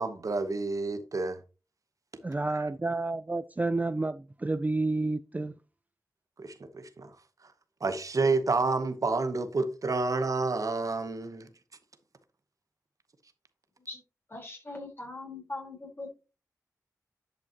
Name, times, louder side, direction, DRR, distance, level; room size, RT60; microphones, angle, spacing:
voice 1, 0.0-1.4 2.5-2.7 6.4-7.2 7.4-7.5 7.8-11.5, right 3 dB, 55° right, 0.9 m, -29 dB
voice 2, 2.2-5.5, right 2 dB, 25° right, 0.4 m, -30 dB
voice 3, 14.3-16.1, left 2 dB, 35° left, 3.9 m, -40 dB
11.0 x 5.5 x 2.9 m
wide cardioid pair, 65°, 7 cm